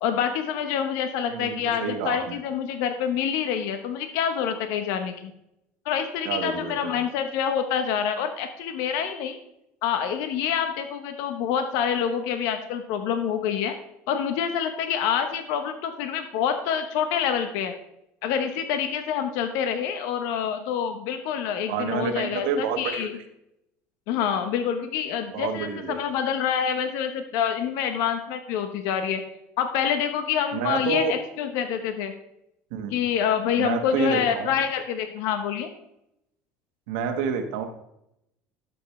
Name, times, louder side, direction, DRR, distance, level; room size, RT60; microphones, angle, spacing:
voice 1, 0.0-5.3 5.8-9.4 9.8-13.7 14.1-17.7 18.2-23.2 24.1-29.2 29.6-32.1 32.9-35.7, left 8 dB, 75° left, 8 dB, 0.9 m, -27 dB
voice 2, 1.2-2.4 6.2-7.1 21.7-23.1 25.3-26.0 30.5-31.1 32.7-33.0 33.6-34.5 36.9-37.6, right 6 dB, 85° right, 6 dB, 1.3 m, -29 dB
11.5 x 7.1 x 3.2 m, 0.82 s
supercardioid pair, 120°, 6 cm